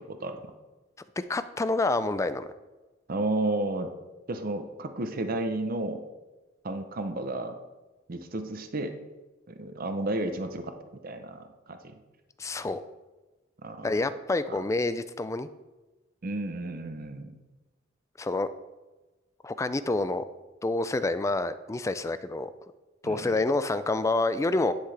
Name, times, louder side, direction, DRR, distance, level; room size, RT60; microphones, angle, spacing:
voice 1, 1.2-2.5 12.4-12.8 13.8-15.5 18.2-18.5 19.4-20.2 20.6-22.5 23.0-24.7, left 2 dB, 15° left, 12 dB, 0.3 m, -28 dB
voice 2, 3.1-3.9 4.3-6.0 6.6-7.6 8.1-9.0 9.5-12.0 13.6-13.9 14.5-14.6 16.2-17.3 23.0-23.4, right 2 dB, 45° right, 7 dB, 0.6 m, -32 dB
10.5 x 5.9 x 3.3 m, 1.2 s
head